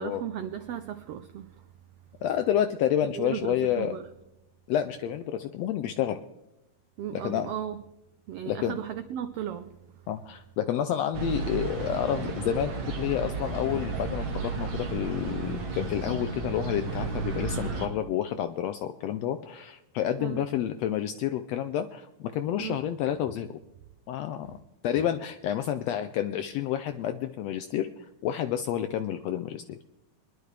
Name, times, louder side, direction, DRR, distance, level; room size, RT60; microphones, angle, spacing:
voice 1, 0.0-1.6 3.1-4.0 7.0-7.8 8.3-9.8 20.2-20.5 22.6-22.8, right 10 dB, 80° right, 1.4 m, -35 dB
voice 2, 2.2-4.0 4.7-6.2 7.1-7.5 8.5-8.8 10.1-23.6 24.1-24.6 24.8-29.8, left 10 dB, 90° left, 1.4 m, -29 dB
sound 1, 11.1-17.9, right 4 dB, 45° right, 2.2 m, -33 dB
24.5 x 11.0 x 3.3 m
omnidirectional pair, 3.6 m